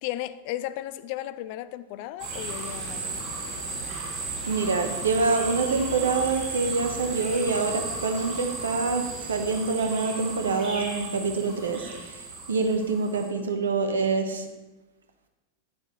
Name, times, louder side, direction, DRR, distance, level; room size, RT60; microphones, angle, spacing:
voice 1, 0.0-3.2, left 14 dB, 45° left, 15 dB, 0.4 m, -35 dB
sound 1, 2.2-13.3, right 3 dB, 35° right, 2.3 m, -35 dB
voice 2, 4.5-14.5, right 4 dB, 70° right, 6 dB, 1.1 m, -26 dB
11.0 x 8.9 x 3.2 m, 1.1 s
figure-of-eight pair, 90°, 0 cm